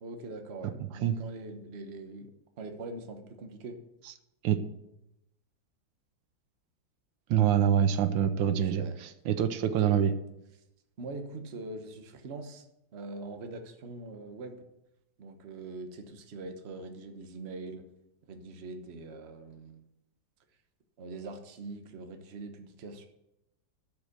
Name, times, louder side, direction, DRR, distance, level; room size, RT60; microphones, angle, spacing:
voice 1, 0.0-2.3 2.6-3.8 8.5-9.0 9.6-9.9 11.0-12.7 12.9-14.6 15.2-17.8 18.3-19.8 21.0-23.1, right 2 dB, 40° right, 5 dB, 1.1 m, -42 dB
voice 2, 7.3-10.1, right 9 dB, 80° right, 10 dB, 1.4 m, -25 dB
12.0 x 5.2 x 6.6 m, 0.87 s
omnidirectional pair, 2.0 m